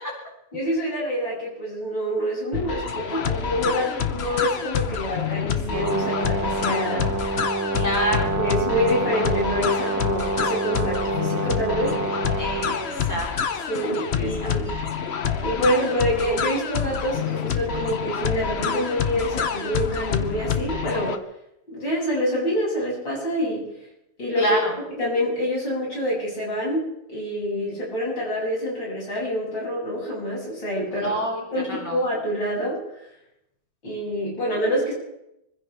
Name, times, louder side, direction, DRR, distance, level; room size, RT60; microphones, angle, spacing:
voice 1, 0.5-7.5 8.3-12.0 13.7-14.6 15.4-21.2 21.7-23.7 24.2-24.6 24.9-31.2 31.5-32.8 33.8-34.9, equal, 85° left, -5 dB, 8.3 m, -26 dB
sound 1, 2.5-21.2, left 7 dB, 45° left, 0.9 m, -27 dB
Brass instrument, 5.7-12.7, right 4 dB, 15° right, 0.7 m, -27 dB
voice 2, 7.7-8.3 12.4-13.3 13.6-13.7 14.2-14.6 24.4-24.7 30.9-31.4 31.7-32.0, right 1 dB, 10° left, -3 dB, 3.7 m, -27 dB
25.5 x 16.0 x 3.5 m, 0.83 s
omnidirectional pair, 2.0 m